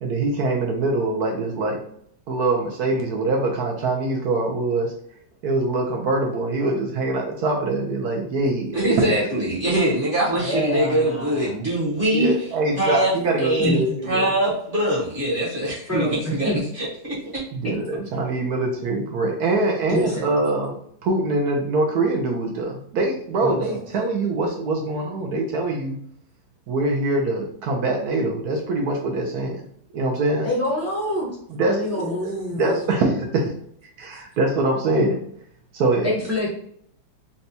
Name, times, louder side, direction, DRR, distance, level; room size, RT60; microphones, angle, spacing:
voice 1, 0.0-1.8 2.3-4.9 5.4-9.1 12.1-14.3 17.5-26.0 26.7-29.7 29.9-30.5 31.5-33.5 34.0-35.2 35.7-36.1, right 2 dB, 70° right, 1 dB, 1.0 m, -23 dB
voice 2, 8.7-12.3 12.8-17.4, right 1 dB, 35° right, -6 dB, 0.9 m, -23 dB
voice 3, 10.4-11.6 13.6-14.0 15.9-16.6 17.6-17.7 19.9-20.3 23.4-23.8 30.4-31.3 31.6-32.7 36.0-36.5, left 1 dB, 20° right, -6 dB, 0.4 m, -26 dB
4.1 x 2.2 x 2.7 m, 0.66 s
omnidirectional pair, 2.1 m